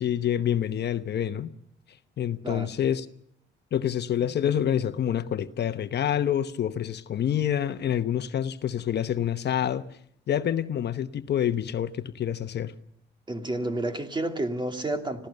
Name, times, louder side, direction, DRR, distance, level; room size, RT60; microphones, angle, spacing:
voice 1, 0.0-1.5 2.2-3.1 3.7-9.9 10.3-12.7, left 10 dB, 60° left, 1.0 m, -27 dB
voice 2, 13.3-15.3, right 1 dB, 25° right, 2.6 m, -30 dB
26.0 x 16.0 x 6.7 m
cardioid pair, 90°, 20 cm